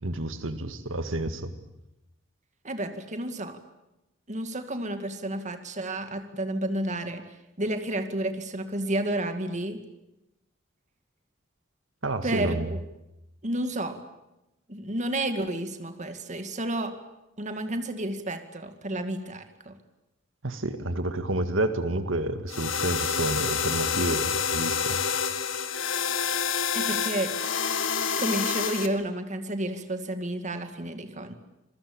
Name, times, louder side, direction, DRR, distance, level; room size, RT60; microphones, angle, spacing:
voice 1, 0.0-1.5 12.0-12.7 20.4-25.0, right 2 dB, 80° right, 9 dB, 2.0 m, -29 dB
voice 2, 2.6-3.6 4.3-7.2 7.6-9.8 12.2-12.8 13.4-14.0 14.7-16.9 17.4-19.7 26.7-27.3 28.2-31.4, right 1 dB, 40° right, 7 dB, 2.2 m, -31 dB
sound 1, 22.5-28.9, left 6 dB, 80° left, 1.9 m, -28 dB
27.0 x 21.5 x 8.8 m, 0.92 s
head